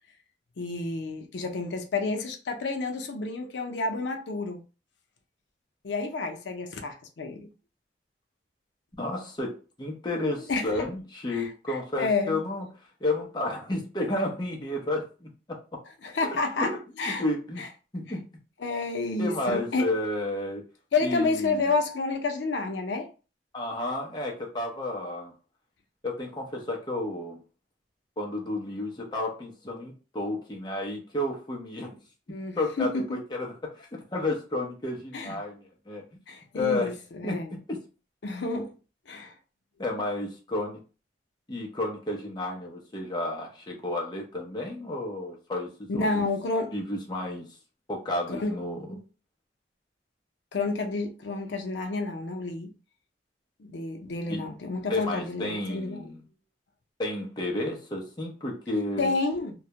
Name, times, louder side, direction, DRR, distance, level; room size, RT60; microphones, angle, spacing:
voice 1, 0.6-4.6 5.8-7.5 10.4-10.8 11.3-12.4 16.0-17.2 17.6-17.7 18.6-19.9 20.9-23.1 32.3-33.2 35.1-35.4 36.3-37.5 38.2-38.7 39.1-39.3 45.9-46.7 48.4-48.6 50.5-52.7 53.6-56.1 59.0-59.5, left 3 dB, 85° left, 0.5 m, -30 dB
voice 2, 9.0-12.7 13.0-15.8 16.6-16.8 17.1-17.7 17.9-18.2 19.2-20.7 21.0-21.7 23.5-25.3 26.0-27.4 28.2-32.0 32.3-36.0 36.5-36.9 37.2-37.8 39.8-40.8 41.5-46.3 46.7-47.5 47.9-49.0 54.3-54.4 54.9-56.2 57.0-59.1, left 2 dB, 25° left, 0.6 m, -32 dB
2.2 x 2.0 x 2.7 m
head